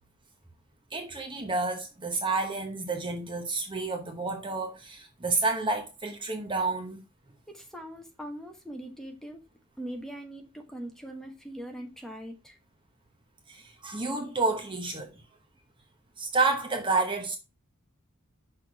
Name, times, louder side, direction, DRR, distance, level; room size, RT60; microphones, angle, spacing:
voice 1, 0.9-7.0 13.5-15.2 16.2-17.4, right 3 dB, 20° right, 1.0 m, -30 dB
voice 2, 7.5-9.4 9.8-12.6, right 1 dB, ahead, 1.1 m, -41 dB
6.1 x 4.4 x 4.8 m
head